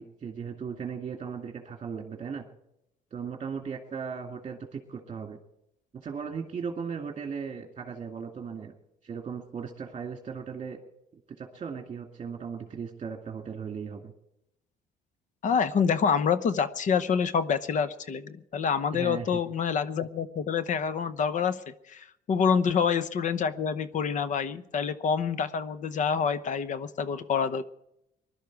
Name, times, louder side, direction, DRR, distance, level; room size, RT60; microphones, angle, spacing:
voice 1, 0.0-2.4 3.1-5.4 6.0-8.7 9.0-10.8 11.4-14.1 18.9-19.4, right 6 dB, 35° right, 2 dB, 2.3 m, -37 dB
voice 2, 15.4-27.7, left 6 dB, 50° left, 13 dB, 0.9 m, -27 dB
20.5 x 12.0 x 4.8 m, 0.79 s
cardioid pair, 110°, 17 cm